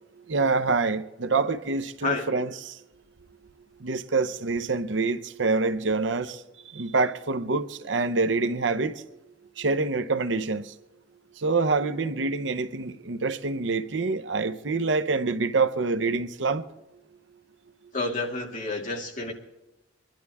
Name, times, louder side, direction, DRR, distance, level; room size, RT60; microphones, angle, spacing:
voice 1, 0.3-2.7 3.8-6.4 6.7-9.0 9.6-10.6 11.4-16.6, right 3 dB, 70° right, 0.8 m, -26 dB
voice 2, 17.9-19.3, left 3 dB, 45° left, 2.6 m, -29 dB
24.0 x 12.0 x 3.5 m
head